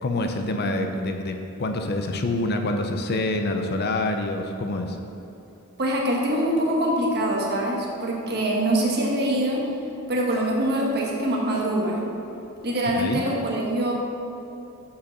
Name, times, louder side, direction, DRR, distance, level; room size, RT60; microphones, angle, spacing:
voice 1, 0.0-5.0 13.0-13.2, left 2 dB, 50° left, 5 dB, 0.6 m, -26 dB
voice 2, 5.8-9.6 10.1-12.0 12.6-13.9, right 1 dB, 50° right, -2 dB, 1.3 m, -24 dB
7.1 x 5.2 x 5.9 m, 2.9 s
head